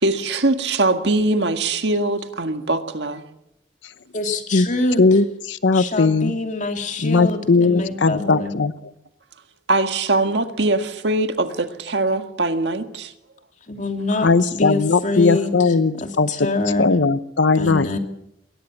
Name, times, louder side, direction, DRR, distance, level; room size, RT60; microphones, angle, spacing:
voice 1, 0.0-3.2 9.7-13.1, right 2 dB, 70° right, 8 dB, 1.7 m, -22 dB
voice 2, 4.1-5.2 5.7-8.5 13.7-16.9 17.5-18.0, left 2 dB, 45° left, 5 dB, 2.7 m, -25 dB
voice 3, 5.0-6.3 7.0-8.7 14.2-16.3 16.8-17.9, left 4 dB, 80° left, 14 dB, 0.8 m, -18 dB
21.5 x 18.5 x 7.3 m, 0.80 s
head